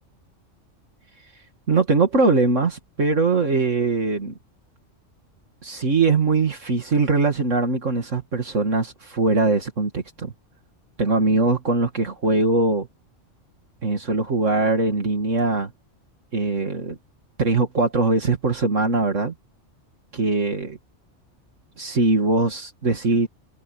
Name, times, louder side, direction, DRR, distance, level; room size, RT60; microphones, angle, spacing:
voice 1, 1.7-4.3 5.6-10.3 11.0-12.9 13.8-15.7 16.3-17.0 17.4-19.3 20.1-20.8 21.8-23.3, right 3 dB, 75° right, 2.8 m, -21 dB
omnidirectional pair, 1.3 m